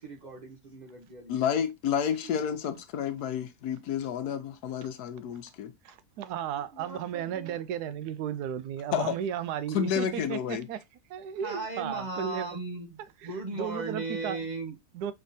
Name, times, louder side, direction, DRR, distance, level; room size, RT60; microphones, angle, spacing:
voice 1, 0.0-1.4 6.7-7.6 11.4-14.8, right 3 dB, 40° right, 0.6 m, -37 dB
voice 2, 1.3-5.7 8.9-9.2 9.7-10.7, left 8 dB, 80° left, 1.3 m, -30 dB
voice 3, 5.8-10.8 11.1-12.6 13.5-14.4 14.9-15.1, right 9 dB, 85° right, 1.1 m, -34 dB
5.5 x 3.5 x 2.6 m
omnidirectional pair, 1.7 m